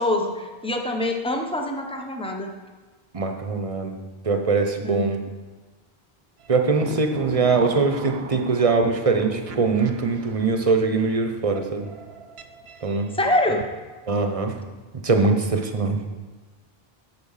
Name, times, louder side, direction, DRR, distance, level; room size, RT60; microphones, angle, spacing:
voice 1, 0.0-2.5 4.8-5.2 13.1-13.6, left 1 dB, 5° left, 3 dB, 0.8 m, -25 dB
voice 2, 3.1-4.0 4.2-5.2 6.5-11.9 12.8-13.1 14.1-14.6 15.0-16.0, right 4 dB, 35° right, 5 dB, 0.9 m, -22 dB
sound 1, 6.4-13.6, right 6 dB, 80° right, 1.0 m, -39 dB
8.4 x 7.1 x 5.7 m, 1.3 s
omnidirectional pair, 1.0 m